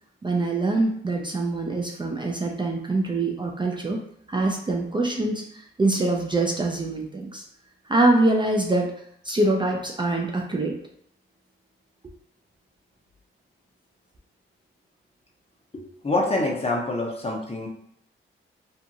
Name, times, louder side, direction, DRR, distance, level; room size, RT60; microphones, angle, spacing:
voice 1, 0.2-4.0 4.3-7.4 7.9-8.9 9.2-10.8, right 2 dB, 20° right, 0 dB, 0.4 m, -24 dB
voice 2, 15.7-17.7, left 2 dB, 30° left, -1 dB, 0.8 m, -26 dB
2.7 x 2.5 x 2.6 m, 0.68 s
cardioid pair, 60°, 21 cm